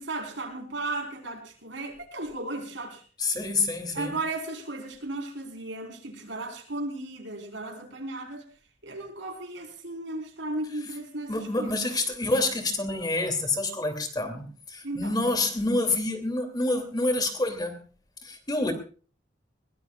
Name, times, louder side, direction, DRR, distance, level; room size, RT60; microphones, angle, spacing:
voice 1, 0.0-3.0 3.9-8.4 8.8-12.0 14.8-15.2, right 2 dB, 75° right, 4 dB, 4.4 m, -35 dB
voice 2, 3.2-4.1 11.3-17.8 18.2-18.7, left 2 dB, 20° left, 6 dB, 2.9 m, -27 dB
22.0 x 19.0 x 2.4 m, 0.39 s
head